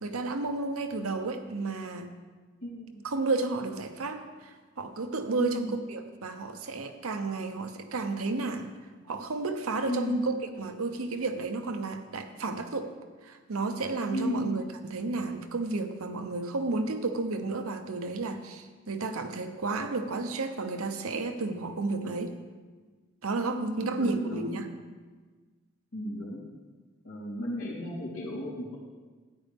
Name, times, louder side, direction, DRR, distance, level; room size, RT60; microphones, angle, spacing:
voice 1, 0.0-2.1 3.0-8.7 9.1-12.9 13.2-14.6 14.9-22.4 23.2-24.7, right 3 dB, 90° right, 7 dB, 0.9 m, -32 dB
voice 2, 2.6-3.0 5.4-5.8 9.9-10.2 14.1-14.6 23.6-24.6 25.9-26.4 27.0-28.8, left 1 dB, 75° left, -6 dB, 3.4 m, -34 dB
12.5 x 9.4 x 3.5 m, 1.4 s
head